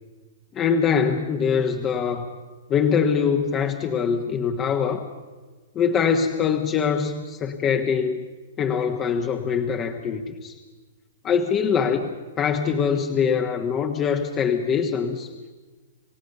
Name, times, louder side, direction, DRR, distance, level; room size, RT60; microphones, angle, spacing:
voice 1, 0.5-2.3 2.7-5.1 5.7-8.2 8.6-10.5 11.2-15.3, left 6 dB, 25° left, 4 dB, 1.4 m, -23 dB
28.5 x 16.0 x 6.7 m, 1.3 s
hypercardioid pair, 130°, 0 cm